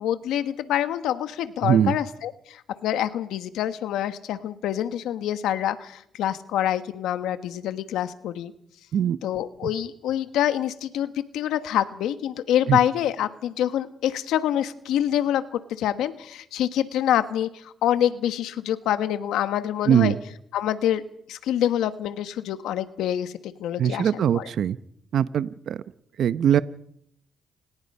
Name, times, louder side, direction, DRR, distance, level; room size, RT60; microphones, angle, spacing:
voice 1, 0.0-8.5 9.2-20.1 20.5-21.0 21.3-23.3 23.6-24.5, left 11 dB, 85° left, 11 dB, 1.3 m, -26 dB
voice 2, 1.6-2.0 8.9-9.2 9.6-9.7 12.7-12.8 19.9-20.2 23.8-24.8 25.1-25.8 26.2-26.6, right 9 dB, 65° right, 14 dB, 0.8 m, -21 dB
28.5 x 19.5 x 5.6 m, 0.71 s
cardioid pair, 90°, 0 cm